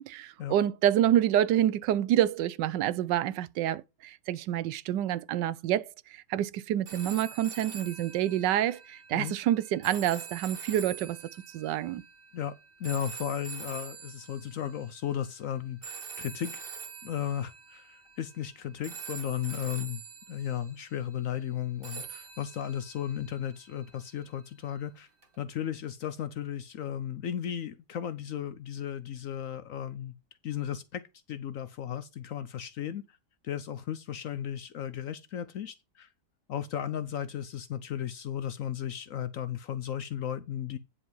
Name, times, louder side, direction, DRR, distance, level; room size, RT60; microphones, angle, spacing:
voice 1, 0.0-11.2 11.5-12.0, right 11 dB, 85° right, 1.3 m, -27 dB
sound 1, 6.9-15.1 15.8-18.5 18.8-21.0 21.8-24.1 25.2-25.3, right 6 dB, 35° right, 1.3 m, -45 dB
voice 2, 12.3-16.6 17.0-20.0 20.3-25.1 25.4-30.1 30.4-33.2 33.4-36.1 36.5-40.8, left 10 dB, 65° left, 0.9 m, -35 dB
9.9 x 5.0 x 5.5 m
omnidirectional pair, 1.9 m